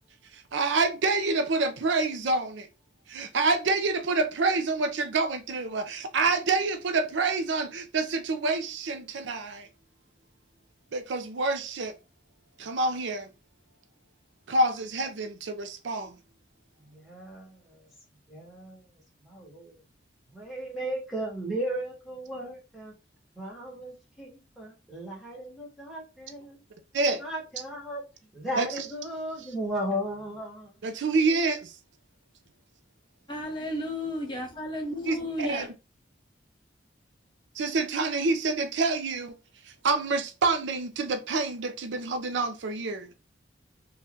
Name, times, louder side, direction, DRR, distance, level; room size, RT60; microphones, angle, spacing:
voice 1, 0.3-2.7 3.1-9.7 10.9-11.9 12.6-13.3 14.5-16.2 26.9-27.2 28.6-28.7 30.8-31.7 35.1-35.7 37.6-39.4 39.6-43.1, right 3 dB, 80° right, 0.5 m, -27 dB
voice 2, 16.8-17.8 18.3-18.9 19.2-19.8 20.3-22.9 23.3-26.6 27.1-28.0 28.3-30.9, equal, ahead, 1.0 m, -36 dB
voice 3, 33.3-35.7, left 1 dB, 25° left, 0.8 m, -33 dB
2.7 x 2.3 x 3.4 m
head